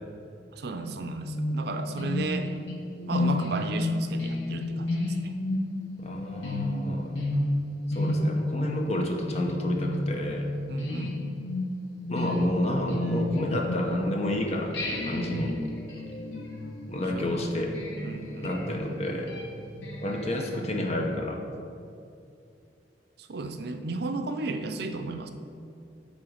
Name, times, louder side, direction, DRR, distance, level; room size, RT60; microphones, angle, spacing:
voice 1, 0.5-2.5 3.1-5.0 10.7-11.2 17.1-17.3 18.0-18.5 23.2-25.3, right 3 dB, 65° right, 7 dB, 0.5 m, -33 dB
sound 1, 1.2-14.3 14.7-20.6, left 1 dB, 80° left, 1.2 m, -32 dB
voice 2, 6.0-7.1 7.9-10.5 12.1-15.5 16.9-17.7 18.4-19.3 20.0-21.4, left 1 dB, 40° left, 2 dB, 0.9 m, -30 dB
8.9 x 3.8 x 6.3 m, 2.5 s
head